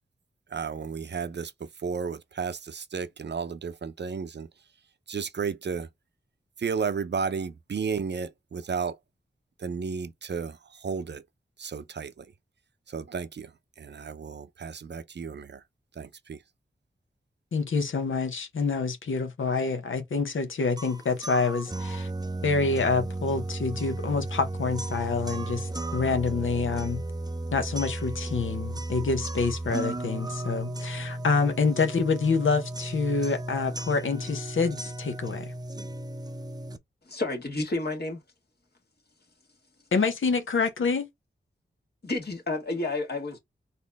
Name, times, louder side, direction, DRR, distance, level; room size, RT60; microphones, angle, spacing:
voice 1, 0.5-4.5 5.1-5.9 6.6-9.0 9.6-11.2 11.6-12.3 12.9-13.5 13.8-15.6 16.0-16.4, right 6 dB, 55° right, 0.6 m, -33 dB
voice 2, 17.5-22.1 22.4-27.0 27.5-35.5 39.9-41.1, left 4 dB, 75° left, 0.9 m, -27 dB
sound 1, 20.8-36.8, right 2 dB, 20° right, 0.6 m, -34 dB
voice 3, 37.1-38.2 42.0-43.4, left 2 dB, 50° left, 1.6 m, -30 dB
4.1 x 2.7 x 3.4 m
cardioid pair, 45°, 21 cm